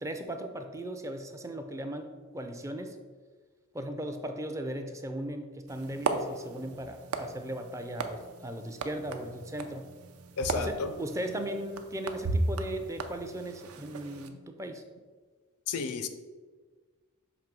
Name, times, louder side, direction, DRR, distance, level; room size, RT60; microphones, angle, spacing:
voice 1, 0.0-3.0 3.7-9.9 10.5-14.8, right 1 dB, 15° right, 6 dB, 0.4 m, -37 dB
sound 1, 5.7-14.3, right 3 dB, 75° right, 0.5 m, -36 dB
voice 2, 10.4-10.9 14.3-14.4 15.7-16.1, left 5 dB, 80° left, 9 dB, 0.5 m, -32 dB
6.0 x 3.0 x 5.2 m, 1.4 s
head